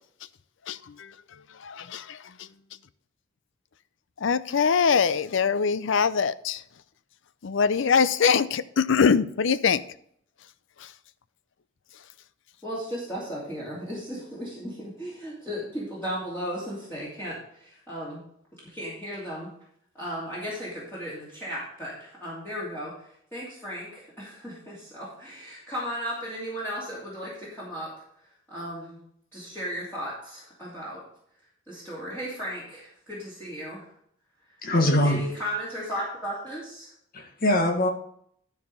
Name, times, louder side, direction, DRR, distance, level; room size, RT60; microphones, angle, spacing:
voice 1, 1.7-2.0 4.2-6.6 7.4-9.8, left 6 dB, 70° left, 0.5 m, -22 dB
voice 2, 12.6-18.2 18.5-19.5 19.9-27.9 28.5-29.0 29.3-31.0 31.7-33.9 35.0-36.9, equal, 10° left, 2.7 m, -35 dB
voice 3, 34.6-35.4 37.1-37.9, left 1 dB, 50° left, 1.7 m, -23 dB
12.0 x 4.8 x 5.5 m
head